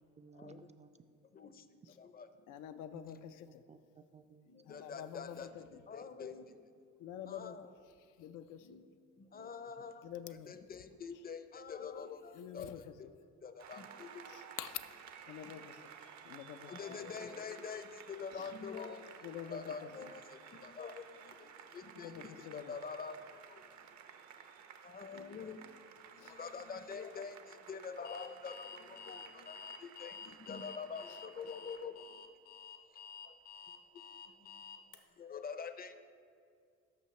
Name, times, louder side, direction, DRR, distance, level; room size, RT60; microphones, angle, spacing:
voice 1, 0.2-0.9 2.9-4.5 6.4-6.5, right 5 dB, 25° right, 8 dB, 0.3 m, -58 dB
voice 2, 2.5-3.6 4.6-5.9 7.0-7.6 8.0-8.8 10.0-10.6 12.3-13.0 14.3-14.8 15.3-15.9 16.2-16.7 18.3-18.5 19.2-19.9 21.9-22.8 26.2-26.7 31.1-31.2, left 10 dB, 85° left, 9 dB, 0.5 m, -47 dB
voice 3, 4.7-5.5 5.9-6.5 7.3-7.7 8.7-8.8 9.3-10.0 10.5-12.7 13.4-14.1 16.7-19.0 19.5-20.2 20.6-21.0 21.7-23.2 24.8-25.6 26.4-27.4 27.7-29.7 30.0-30.1 30.5-31.9 35.2-36.0, left 5 dB, 30° left, 10 dB, 0.5 m, -45 dB
Applause, 13.6-31.9, right 7 dB, 65° right, 0.7 m, -55 dB
Alarm, 28.0-35.0, left 6 dB, 70° left, 0.9 m, -50 dB
12.5 x 5.6 x 3.1 m, 2.3 s
cardioid pair, 90°, 30 cm